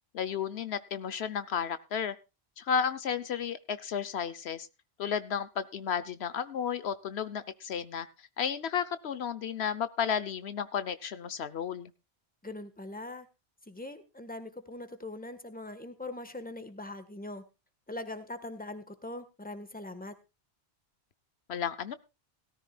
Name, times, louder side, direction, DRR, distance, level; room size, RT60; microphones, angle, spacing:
voice 1, 0.1-2.1 2.6-4.7 5.0-8.1 8.4-11.9 21.5-22.0, left 7 dB, 80° left, 13 dB, 1.1 m, -33 dB
voice 2, 12.4-13.3 13.7-17.4 17.9-20.1, left 2 dB, 10° left, 10 dB, 1.4 m, -41 dB
17.5 x 13.5 x 2.3 m, 0.27 s
omnidirectional pair, 1.1 m